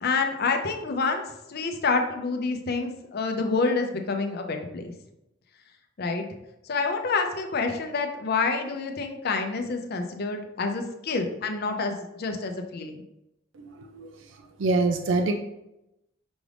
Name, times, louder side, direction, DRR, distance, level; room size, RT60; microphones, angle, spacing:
voice 1, 0.0-1.2 1.5-4.9 6.0-6.2 6.7-13.0, left 4 dB, 55° left, 5 dB, 0.6 m, -28 dB
voice 2, 13.6-14.1 14.6-15.3, right 3 dB, 75° right, 5 dB, 0.4 m, -25 dB
6.0 x 2.5 x 3.3 m, 0.88 s
head